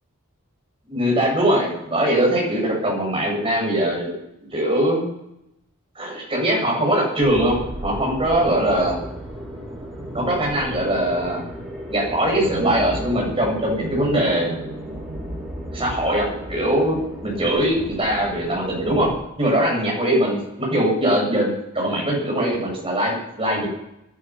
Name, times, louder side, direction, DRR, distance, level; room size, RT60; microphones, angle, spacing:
voice 1, 0.9-4.2 4.5-5.0 5.9-9.0 10.1-11.4 11.9-14.5 15.7-19.1 19.4-23.7, right 1 dB, 25° right, -2 dB, 7.9 m, -21 dB
sound 1, 7.2-19.1, right 1 dB, ahead, 6.7 m, -34 dB
21.0 x 11.5 x 5.9 m, 0.85 s
head